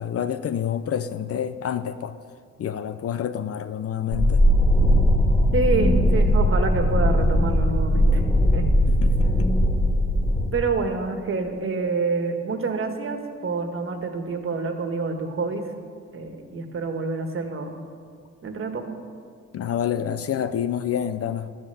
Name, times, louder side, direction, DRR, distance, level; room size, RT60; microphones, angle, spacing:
voice 1, 0.0-2.1 2.6-4.5 8.9-9.5 19.5-21.6, left 9 dB, 50° left, 12 dB, 0.6 m, -28 dB
sound 1, 4.1-10.5, equal, 10° left, 2.5 m, -19 dB
voice 2, 5.5-8.2 8.5-8.7 10.5-15.6 16.1-17.7 18.4-18.8, right 3 dB, 45° right, 5 dB, 1.7 m, -27 dB
12.0 x 8.8 x 7.0 m, 2.2 s
cardioid pair, 90°, 30 cm